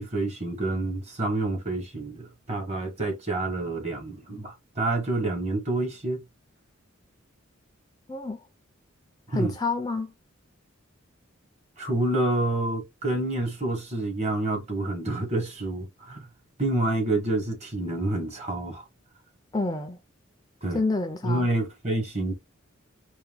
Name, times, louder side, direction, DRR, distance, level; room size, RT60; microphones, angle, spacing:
voice 1, 0.0-6.2 9.3-9.5 11.8-16.3 16.6-18.8 20.6-20.8 21.2-22.3, right 2 dB, 30° right, 1.2 m, -28 dB
voice 2, 8.1-8.4 9.3-10.1 19.5-20.0 20.7-21.5, left 3 dB, 20° left, 0.4 m, -28 dB
4.5 x 2.2 x 3.4 m
head